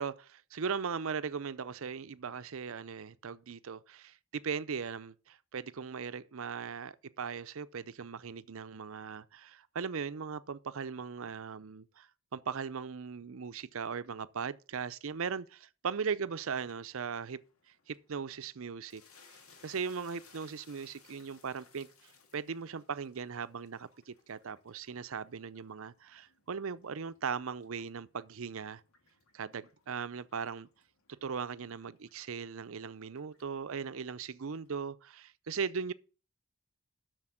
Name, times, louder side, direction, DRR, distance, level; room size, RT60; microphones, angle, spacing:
voice 1, 0.0-17.4 17.9-19.0 19.6-28.8 29.3-30.7 31.2-35.9, right 6 dB, 70° right, 0.5 m, -38 dB
sound 1, 16.5-34.7, left 4 dB, 75° left, 1.9 m, -64 dB
7.8 x 6.6 x 7.4 m
head